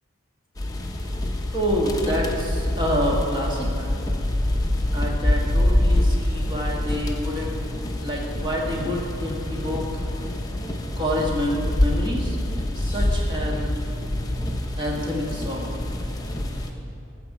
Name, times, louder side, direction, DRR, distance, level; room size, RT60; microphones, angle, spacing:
sound 1, 0.6-16.7, left 1 dB, 15° left, 0.7 m, -25 dB
voice 1, 1.5-3.9 4.9-7.6 8.0-10.0 11.0-12.4 12.7-13.7 14.8-15.7, equal, 20° right, -3 dB, 1.5 m, -27 dB
15.0 x 6.9 x 4.8 m, 2.7 s
head